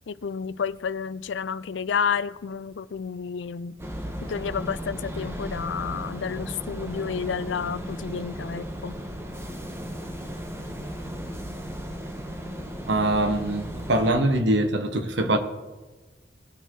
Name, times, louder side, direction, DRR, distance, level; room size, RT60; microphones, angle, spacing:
voice 1, 0.1-3.8 4.3-9.0, left 6 dB, 85° left, 0.4 m, -30 dB
sound 1, 3.8-14.1, equal, 15° right, 1.3 m, -35 dB
voice 2, 12.9-15.4, right 1 dB, 75° right, 1.2 m, -23 dB
18.5 x 6.8 x 4.6 m
head